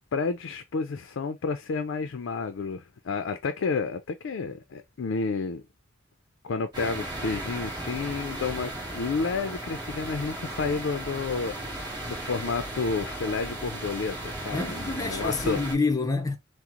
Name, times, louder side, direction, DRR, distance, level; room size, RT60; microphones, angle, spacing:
voice 1, 0.1-5.6 6.4-15.6, left 4 dB, 70° left, 0.4 m, -31 dB
sound 1, 6.7-15.8, right 1 dB, 20° right, 1.2 m, -36 dB
voice 2, 14.5-16.4, left 3 dB, 15° left, 0.6 m, -27 dB
3.7 x 2.0 x 2.9 m
head